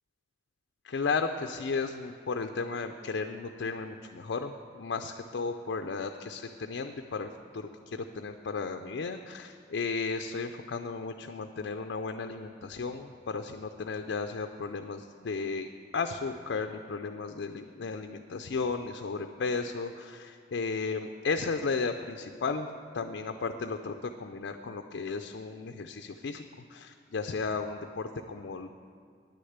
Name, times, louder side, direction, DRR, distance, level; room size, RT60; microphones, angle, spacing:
voice 1, 0.8-22.7 22.9-26.4 26.7-28.7, left 4 dB, 80° left, 6 dB, 0.5 m, -34 dB
10.0 x 6.6 x 7.9 m, 2.2 s
head